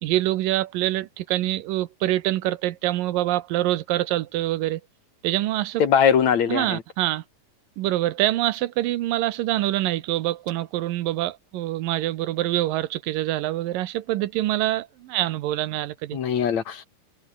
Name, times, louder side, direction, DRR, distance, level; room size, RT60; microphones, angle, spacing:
voice 1, 0.0-4.8 5.2-5.8 6.5-7.2 7.8-16.2, right 15 dB, 80° right, 2.6 m, -25 dB
voice 2, 5.8-6.8 16.1-16.8, left 7 dB, 55° left, 3.1 m, -21 dB
omnidirectional pair, 4.0 m